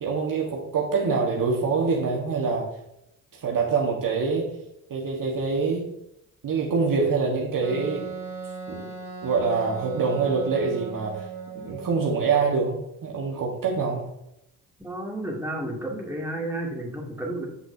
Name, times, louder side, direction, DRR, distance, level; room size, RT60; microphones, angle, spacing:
voice 1, 0.0-2.7 3.4-4.5 4.9-5.8 6.4-8.1 8.7-8.9 9.2-11.2 11.5-14.1, right 4 dB, 50° right, -2 dB, 1.6 m, -25 dB
Wind instrument woodwind instrument, 7.6-12.3, right 6 dB, 85° right, 2.1 m, -37 dB
voice 2, 14.8-17.5, right 1 dB, 5° right, -3 dB, 2.5 m, -31 dB
8.3 x 5.8 x 2.8 m, 0.82 s
hypercardioid pair, 50°, 43 cm